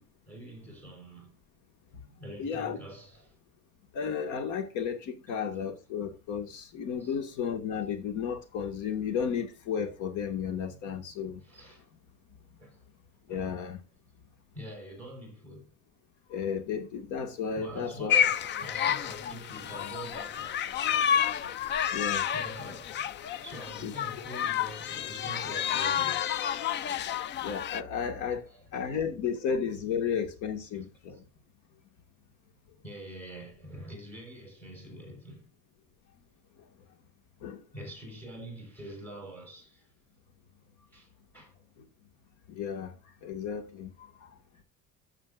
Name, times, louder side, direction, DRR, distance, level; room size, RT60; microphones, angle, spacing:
voice 1, 0.0-1.4 2.2-3.3 7.0-7.4 11.4-11.8 12.6-12.8 13.3-13.6 14.5-15.7 17.5-20.6 22.3-26.3 28.3-29.1 30.2-30.4 30.7-31.2 32.8-35.5 37.7-39.9 40.9-41.5, right 1 dB, 5° left, 4.8 m, -46 dB
voice 2, 2.4-2.8 3.9-11.4 13.3-13.8 16.3-18.2 21.9-22.3 23.8-23.9 27.4-28.4 28.7-31.2 37.4-37.6 42.5-42.9 43.2-44.3, left 7 dB, 75° left, 2.1 m, -33 dB
sound 1, 18.1-27.8, left 9 dB, 40° left, 0.4 m, -30 dB
14.0 x 7.7 x 2.5 m
cardioid pair, 165°, 31 cm